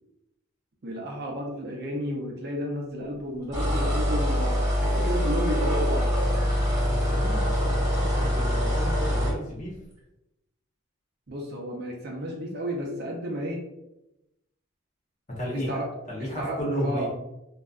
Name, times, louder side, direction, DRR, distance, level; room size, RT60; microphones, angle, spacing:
voice 1, 0.8-6.1 11.3-13.6 15.5-15.9 16.2-17.1, equal, 50° right, -1 dB, 0.5 m, -32 dB
sound 1, 3.5-9.4, equal, 15° right, 1.2 m, -24 dB
voice 2, 6.9-9.8 15.3-15.8 16.1-17.1, equal, 35° left, -5 dB, 0.8 m, -33 dB
2.6 x 2.2 x 2.3 m, 0.91 s
head